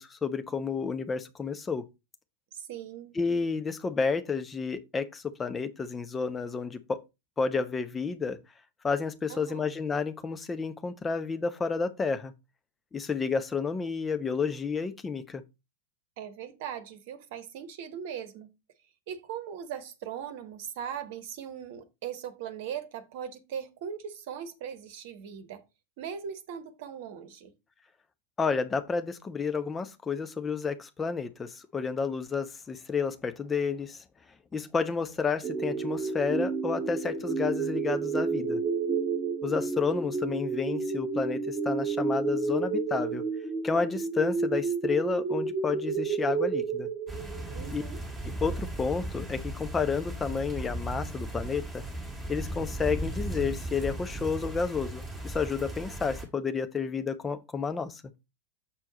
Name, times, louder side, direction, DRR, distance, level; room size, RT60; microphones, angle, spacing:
voice 1, 0.0-1.8 3.1-7.0 7.4-8.4 8.8-12.3 12.9-15.4 28.4-34.0 34.5-38.6 39.4-43.2 43.6-46.9 47.7-47.8 48.4-51.8 52.3-58.0, left 5 dB, 15° left, 0.8 m, -31 dB
voice 2, 2.5-3.2 9.3-9.7 16.2-18.5 19.1-25.6 26.0-27.5 47.5-48.0, right 8 dB, 50° right, 1.1 m, -39 dB
sound 1, 35.4-47.8, right 4 dB, 30° right, 1.5 m, -30 dB
sound 2, 47.1-56.3, right 1 dB, ahead, 2.6 m, -36 dB
7.3 x 4.6 x 4.1 m
figure-of-eight pair, 90°, 0 cm